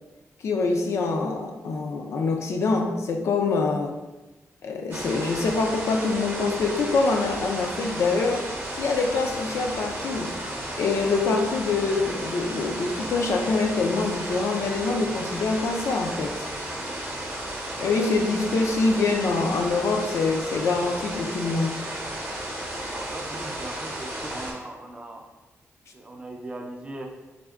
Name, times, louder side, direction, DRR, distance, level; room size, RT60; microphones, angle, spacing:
voice 1, 0.4-4.0 4.6-8.4 8.8-10.3 10.8-16.4 17.8-21.7, left 3 dB, 65° left, 3 dB, 0.3 m, -25 dB
sound 1, 4.9-24.5, right 1 dB, 45° right, 0.7 m, -33 dB
voice 2, 22.9-25.2 25.9-27.1, right 2 dB, 25° right, 2 dB, 0.3 m, -39 dB
3.4 x 2.1 x 2.3 m, 1.1 s
wide cardioid pair, 130°, 5 cm